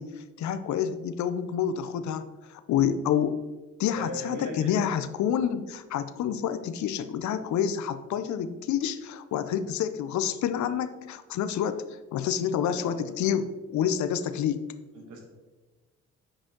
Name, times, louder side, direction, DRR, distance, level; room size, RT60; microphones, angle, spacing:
voice 1, 0.0-3.4 3.8-11.8 12.1-14.6, left 9 dB, 70° left, 11 dB, 0.6 m, -28 dB
voice 2, 4.0-4.7 12.7-13.1 14.9-15.2, right 1 dB, 80° right, 1 dB, 1.9 m, -38 dB
8.7 x 5.1 x 3.7 m, 1.2 s
cardioid pair, 90°, 30 cm